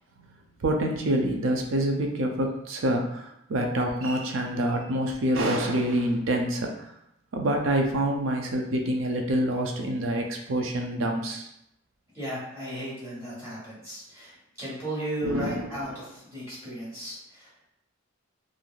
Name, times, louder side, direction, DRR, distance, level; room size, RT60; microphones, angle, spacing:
voice 1, 0.6-6.9 7.3-11.5 15.2-15.9, right 1 dB, 70° right, 2 dB, 0.5 m, -26 dB
voice 2, 12.1-17.7, right 1 dB, 15° right, -10 dB, 1.3 m, -35 dB
3.1 x 2.5 x 2.4 m, 0.78 s
head